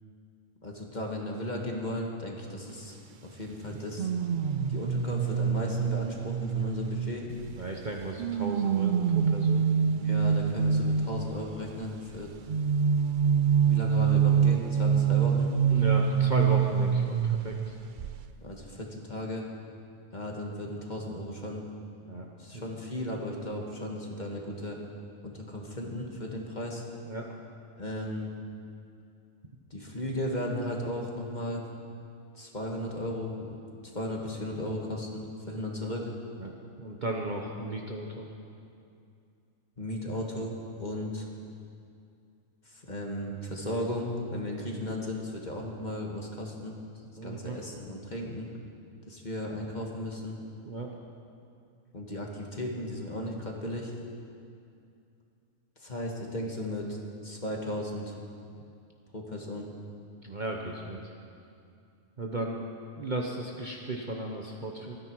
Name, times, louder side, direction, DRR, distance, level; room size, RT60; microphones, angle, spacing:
voice 1, 0.6-3.0 3.2-4.1 4.7-7.3 9.7-12.3 13.7-15.5 18.4-19.5 20.1-21.6 22.4-24.8 25.2-26.8 27.8-28.3 29.7-31.6 32.3-33.6 33.9-36.1 39.8-41.3 42.6-46.8 47.2-48.5 49.1-50.4 51.9-53.9 55.8-57.0 57.2-58.1 59.1-59.7, left 1 dB, 30° left, 0 dB, 1.7 m, -35 dB
sound 1, 4.0-7.6 8.2-11.4 12.5-17.7 18.0-18.3, right 7 dB, 80° right, 0.4 m, -25 dB
voice 2, 7.6-9.6 15.7-17.7 22.1-22.2 22.5-22.6 27.1-27.2 35.5-35.6 36.4-36.5 36.8-38.2 47.2-47.6 50.7-50.9 60.2-61.0 62.2-62.7 63.0-65.0, right 2 dB, 40° right, 0 dB, 1.0 m, -35 dB
25.0 x 9.7 x 4.7 m, 2.5 s
omnidirectional pair, 1.5 m